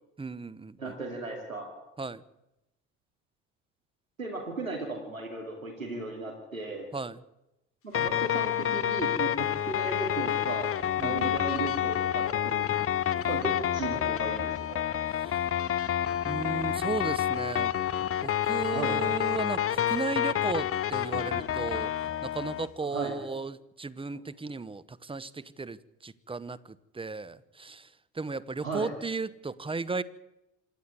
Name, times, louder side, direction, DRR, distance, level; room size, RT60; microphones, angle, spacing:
voice 1, 0.2-1.0 2.0-2.2 6.9-7.2 11.0-11.4 15.1-15.4 16.2-17.7 18.2-30.0, right 4 dB, 15° right, 17 dB, 1.0 m, -35 dB
voice 2, 0.8-1.7 4.2-6.9 7.8-10.7 11.0-12.7 13.3-14.8 18.7-19.0 22.9-23.1 28.6-28.9, right 3 dB, 90° right, 1 dB, 2.6 m, -36 dB
sound 1, 7.9-22.7, left 10 dB, 35° left, 1.1 m, -29 dB
26.5 x 10.5 x 9.6 m, 0.95 s
figure-of-eight pair, 60°, 39 cm